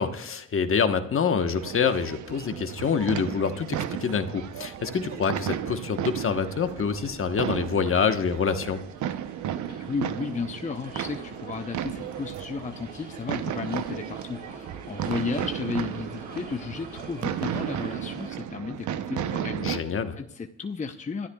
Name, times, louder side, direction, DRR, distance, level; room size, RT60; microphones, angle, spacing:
voice 1, 0.0-8.8 19.6-20.2, left 6 dB, 45° left, 7 dB, 1.2 m, -26 dB
sound 1, 1.5-19.8, right 10 dB, 75° right, 0.8 m, -34 dB
sound 2, 4.2-18.3, right 2 dB, 30° right, 4.3 m, -47 dB
voice 2, 9.7-21.3, left 5 dB, 25° left, 6 dB, 0.8 m, -34 dB
26.5 x 13.0 x 2.4 m, 0.87 s
cardioid pair, 90°, 30 cm